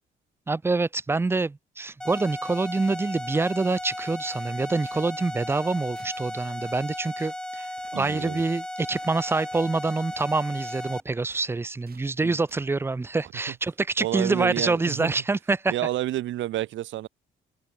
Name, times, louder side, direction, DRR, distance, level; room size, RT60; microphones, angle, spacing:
voice 1, 0.5-15.7, right 3 dB, 10° right, 0.4 m, -26 dB
sound 1, 2.0-11.0, left 1 dB, 5° left, 1.1 m, -36 dB
sound 2, 4.2-5.1 5.4-5.7 5.9-6.3 6.6-6.9 7.2-7.5 7.8-8.0 8.3-9.7 10.1-10.9 11.3-12.2 12.5-12.7, right 7 dB, 50° right, 5.2 m, -57 dB
voice 2, 7.9-8.4 12.2-12.4 14.0-15.1 15.7-17.1, right 14 dB, 75° right, 0.6 m, -29 dB
cardioid pair, 90°, 20 cm